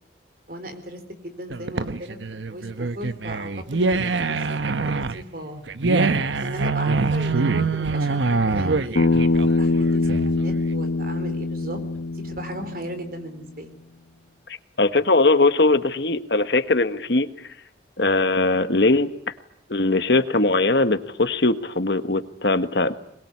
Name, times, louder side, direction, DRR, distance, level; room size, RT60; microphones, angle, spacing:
voice 1, 0.5-5.6 6.4-11.8 12.1-13.7, right 1 dB, 50° right, 8 dB, 3.9 m, -37 dB
sound 1, 1.5-10.5, right 3 dB, 75° right, 1.0 m, -24 dB
Bass guitar, 9.0-13.2, left 3 dB, 80° left, 1.0 m, -23 dB
voice 2, 14.5-17.5 18.0-19.1 19.7-22.9, left 2 dB, 65° left, 11 dB, 1.4 m, -20 dB
22.0 x 22.0 x 9.7 m, 0.72 s
head